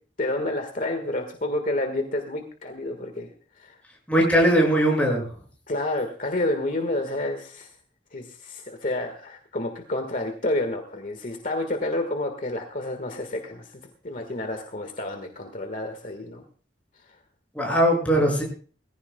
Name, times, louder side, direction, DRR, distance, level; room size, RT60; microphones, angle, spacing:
voice 1, 0.2-3.3 3.6-3.8 5.7-7.7 8.1-16.4, left 1 dB, 50° left, 5 dB, 1.6 m, -29 dB
voice 2, 4.1-5.2 17.5-18.4, equal, 10° left, -1 dB, 6.3 m, -20 dB
21.5 x 15.5 x 2.3 m, 0.39 s
head